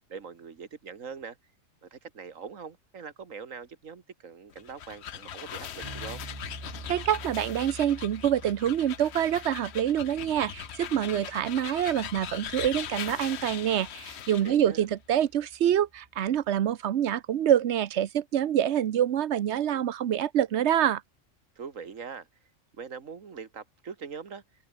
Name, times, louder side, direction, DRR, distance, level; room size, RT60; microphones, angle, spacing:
voice 1, 0.1-1.4 1.8-6.2 14.4-14.9 21.6-22.3 22.7-24.4, right 6 dB, 80° right, 2.1 m, -42 dB
sound 1, 4.5-14.6, left 9 dB, 60° left, 1.1 m, -40 dB
sound 2, 5.8-16.7, right 1 dB, 25° right, 6.0 m, -48 dB
voice 2, 6.9-21.0, right 10 dB, 60° right, 1.0 m, -26 dB
omnidirectional pair, 1.3 m